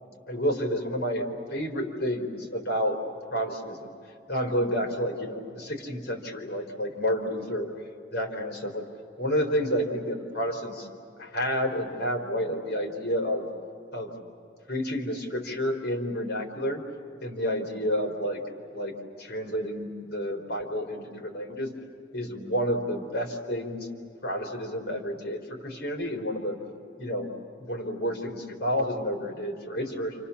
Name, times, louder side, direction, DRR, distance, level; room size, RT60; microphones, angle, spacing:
voice 1, 0.3-3.0 3.3-3.9 4.3-7.7 8.1-8.8 9.2-10.9 11.2-13.5 13.9-14.1 14.7-16.8 17.2-18.4 18.7-18.9 19.2-21.7 22.1-23.9 24.2-26.6 27.0-27.3 27.6-30.3, equal, 60° left, 3 dB, 4.1 m, -30 dB
29.0 x 28.0 x 7.2 m, 2.6 s
head